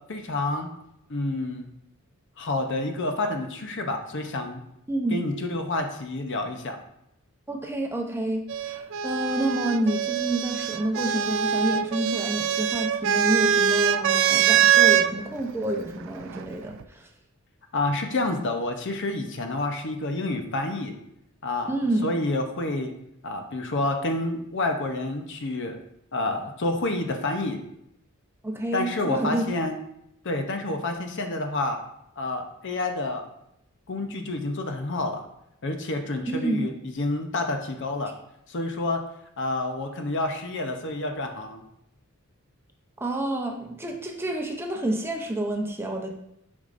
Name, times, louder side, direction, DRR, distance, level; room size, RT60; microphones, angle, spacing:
voice 1, 0.1-0.7 1.1-1.7 2.4-4.6 5.1-6.8 17.7-20.9 21.4-21.7 22.0-22.9 23.2-25.8 26.1-27.6 28.7-29.7 30.2-31.8 32.2-33.2 33.9-35.3 35.6-38.1 38.5-39.0 39.4-41.6, left 2 dB, 55° left, 5 dB, 0.7 m, -28 dB
voice 2, 4.9-5.2 7.5-17.1 21.7-22.2 28.4-29.4 36.3-36.7 43.0-46.1, right 1 dB, 10° right, 2 dB, 0.6 m, -29 dB
sound 1, 8.5-15.1 16.2-16.8, right 9 dB, 60° right, 0.3 m, -23 dB
8.4 x 5.3 x 2.6 m, 0.80 s
head